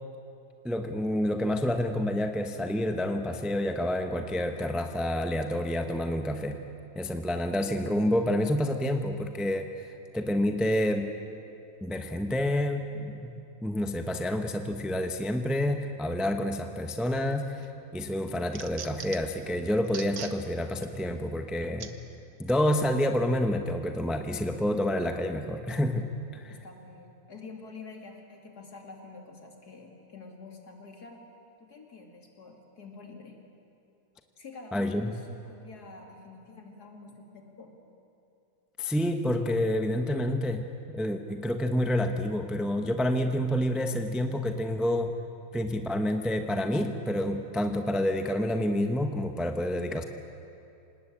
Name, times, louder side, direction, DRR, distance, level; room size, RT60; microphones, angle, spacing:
voice 1, 0.6-6.6 6.9-9.7 10.1-11.1 11.8-13.3 13.6-17.5 17.9-21.9 22.4-26.1 26.3-26.5 34.7-35.1 38.8-45.1 45.5-50.0, left 1 dB, ahead, 6 dB, 0.5 m, -28 dB
sound 1, 17.3-17.7 18.1-19.4 19.8-20.4 20.8-20.9 21.8-21.9 22.7-22.8, right 7 dB, 50° right, 1.4 m, -41 dB
voice 2, 26.5-31.3 31.6-33.4 34.4-37.7, left 3 dB, 45° left, 2 dB, 3.2 m, -47 dB
27.0 x 19.5 x 8.7 m, 2.7 s
omnidirectional pair, 2.3 m